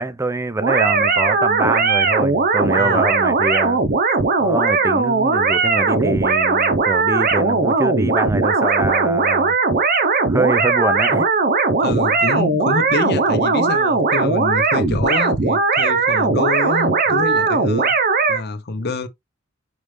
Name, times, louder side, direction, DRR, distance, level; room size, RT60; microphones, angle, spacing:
voice 1, 0.0-3.8 4.4-9.5 10.3-11.3, right 2 dB, 15° right, 0.4 m, -24 dB
sound 1, 0.6-18.4, right 4 dB, 45° right, 0.8 m, -18 dB
voice 2, 2.8-3.1 11.8-17.9 18.3-19.1, left 3 dB, 55° left, 0.8 m, -26 dB
5.2 x 3.1 x 3.2 m
head